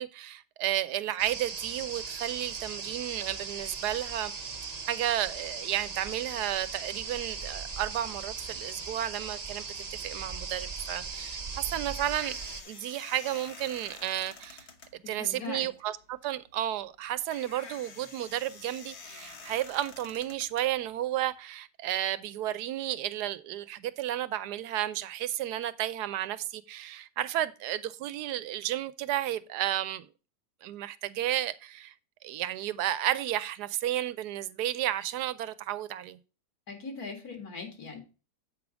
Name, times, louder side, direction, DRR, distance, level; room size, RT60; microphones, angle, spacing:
voice 1, 0.0-4.3 4.9-12.4 12.7-14.7 14.9-30.1 30.6-31.9 32.2-36.2, right 12 dB, 80° right, 1.1 m, -32 dB
sound 1, 1.2-12.6, right 4 dB, 35° right, 0.7 m, -38 dB
sound 2, 11.4-21.3, left 4 dB, 45° left, 1.2 m, -49 dB
voice 2, 15.0-15.7 36.7-38.0, left 4 dB, 65° left, 2.5 m, -40 dB
8.3 x 4.8 x 4.9 m
omnidirectional pair, 1.7 m